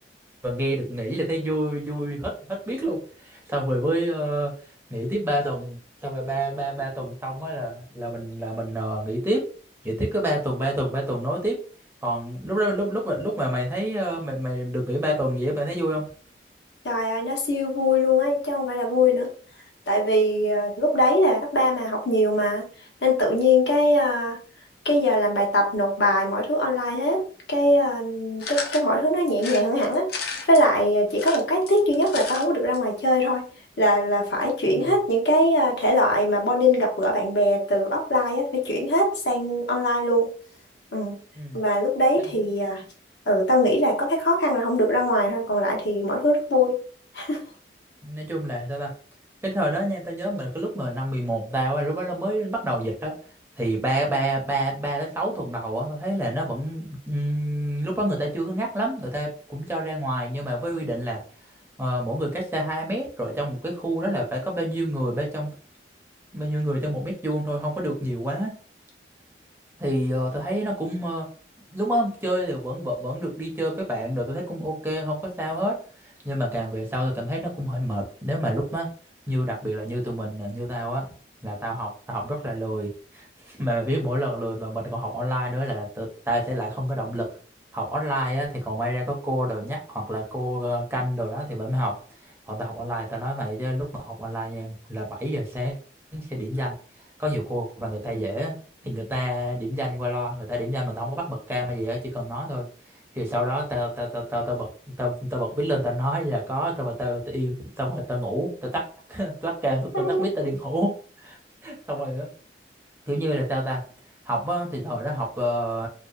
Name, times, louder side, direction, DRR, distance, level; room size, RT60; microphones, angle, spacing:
voice 1, 0.4-4.5 4.9-9.5 9.8-11.6 12.0-16.1 34.7-34.9 41.3-41.6 42.2-42.3 48.0-48.9 49.4-53.2 53.6-61.2 61.8-65.5 66.3-68.6 69.8-71.3 71.7-75.8 76.0-78.9 79.3-81.1 81.4-87.3 87.7-92.0 92.2-95.8 96.1-96.8 97.2-98.6 98.8-102.7 103.1-104.7 105.0-112.3 113.1-113.8 114.3-115.9, equal, 15° right, -1 dB, 0.5 m, -28 dB
voice 2, 16.8-19.3 19.9-22.6 23.0-24.4 24.8-33.4 33.8-40.3 40.9-41.2 41.5-42.8 43.3-46.8 47.1-47.4 109.9-110.2, left 1 dB, 75° left, 0 dB, 0.8 m, -22 dB
sound 1, 28.4-28.9 29.4-30.6 31.1-32.4 32.7-32.8 33.0-33.1, left 4 dB, 55° left, 0.4 m, -33 dB
2.6 x 2.1 x 2.4 m, 0.41 s
head